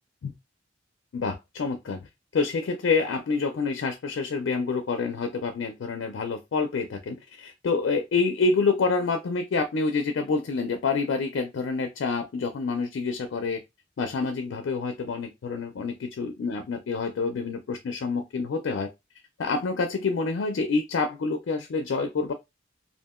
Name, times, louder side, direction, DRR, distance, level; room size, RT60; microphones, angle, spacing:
voice 1, 1.1-2.1 2.3-13.6 14.0-18.9 19.4-22.3, left 4 dB, 70° left, 0.4 m, -27 dB
2.7 x 2.4 x 2.3 m
head